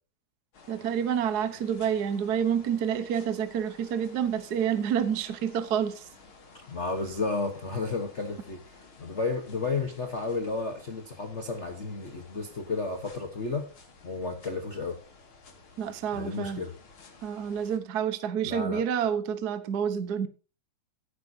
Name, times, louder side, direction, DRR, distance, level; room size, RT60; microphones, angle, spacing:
sound 1, 0.5-17.8, left 4 dB, 45° left, 2.9 m, -54 dB
voice 1, 0.7-6.0 15.8-16.6 17.2-20.3, right 8 dB, 70° right, 0.9 m, -28 dB
voice 2, 6.7-13.7 14.0-15.0 16.1-16.7 18.4-18.8, left 3 dB, 75° left, 0.6 m, -32 dB
16.0 x 9.4 x 2.8 m
omnidirectional pair, 3.4 m